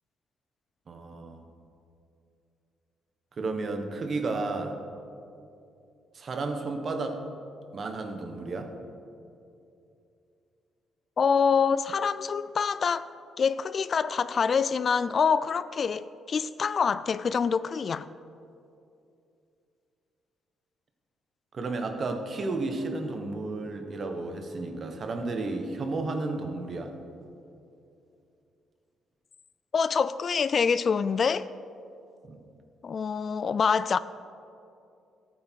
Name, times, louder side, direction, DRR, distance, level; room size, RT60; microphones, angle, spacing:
voice 1, 0.9-1.4 3.4-4.7 6.1-7.2 7.7-8.7 21.5-26.9 32.2-32.4, right 3 dB, 45° right, 1.4 m, -32 dB
voice 2, 11.2-13.1 13.4-18.1 29.7-31.5 32.8-34.0, left 6 dB, 45° left, 0.3 m, -26 dB
14.0 x 8.7 x 4.7 m
cardioid pair, 90°, 0 cm